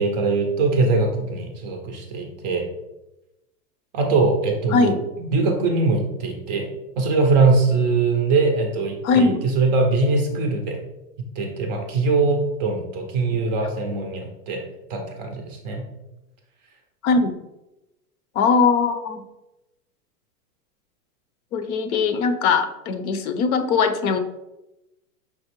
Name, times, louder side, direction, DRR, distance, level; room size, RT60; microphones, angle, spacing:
voice 1, 0.0-2.6 3.9-4.9 5.2-6.6 7.0-10.8 11.4-14.6 14.9-15.8, right 3 dB, 30° right, 3 dB, 0.4 m, -22 dB
voice 2, 4.7-5.0 9.0-9.4 13.3-13.4 17.0-17.3 18.3-19.2 21.5-24.2, left 4 dB, 65° left, 8 dB, 0.7 m, -20 dB
5.7 x 3.0 x 2.9 m, 0.97 s
hypercardioid pair, 135°, 48 cm